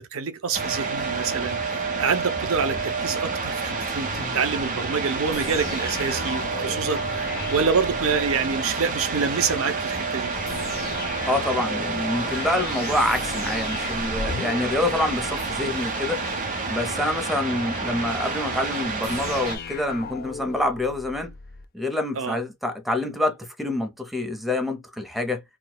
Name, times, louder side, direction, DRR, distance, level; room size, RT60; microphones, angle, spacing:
voice 1, 0.0-10.3 22.1-22.4, right 5 dB, 70° right, 0.6 m, -27 dB
sound 1, 0.5-19.6, right 4 dB, 40° right, 0.9 m, -29 dB
sound 2, 1.8-18.8, left 2 dB, 65° left, 1.5 m, -44 dB
sound 3, 5.3-8.6 10.4-15.7 19.0-21.7, left 5 dB, 45° left, 0.4 m, -37 dB
voice 2, 11.3-16.2 16.7-21.3 21.7-25.4, left 1 dB, ahead, 0.7 m, -26 dB
4.5 x 2.2 x 2.2 m
head